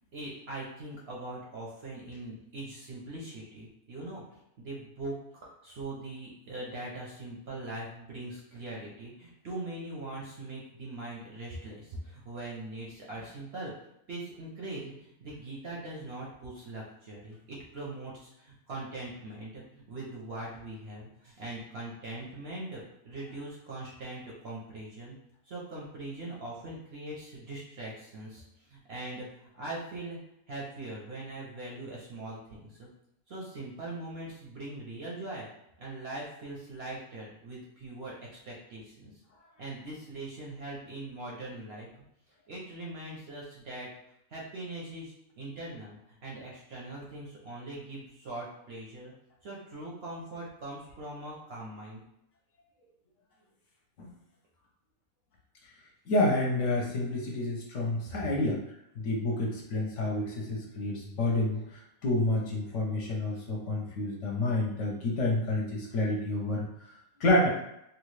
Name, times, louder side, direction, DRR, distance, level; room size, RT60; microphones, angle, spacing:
voice 1, 0.1-4.2 4.6-5.2 5.4-13.7 14.1-22.8 23.0-25.2 25.5-30.2 30.5-32.9 33.3-35.5 35.8-38.2 38.5-39.1 39.6-41.9 42.5-43.9 44.3-49.1 49.4-52.0, right 2 dB, 55° right, -4 dB, 0.7 m, -41 dB
voice 2, 56.1-58.6 59.0-66.9 67.2-67.5, left 2 dB, 65° left, -2 dB, 0.9 m, -29 dB
2.9 x 2.3 x 3.1 m, 0.80 s
omnidirectional pair, 1.5 m